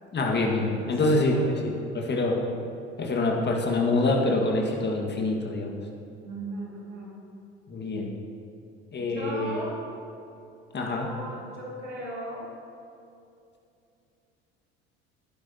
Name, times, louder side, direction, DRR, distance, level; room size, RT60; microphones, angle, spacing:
voice 1, 0.1-1.4 1.6-2.4 3.0-5.7 7.7-8.1 8.9-9.6 10.7-11.1, left 2 dB, 30° left, 1 dB, 2.0 m, -25 dB
voice 2, 0.8-1.6 6.2-7.1 9.1-9.8 11.0-12.5, right 2 dB, 80° right, -4 dB, 2.6 m, -37 dB
19.5 x 10.0 x 3.0 m, 2.6 s
figure-of-eight pair, 65°, 35 cm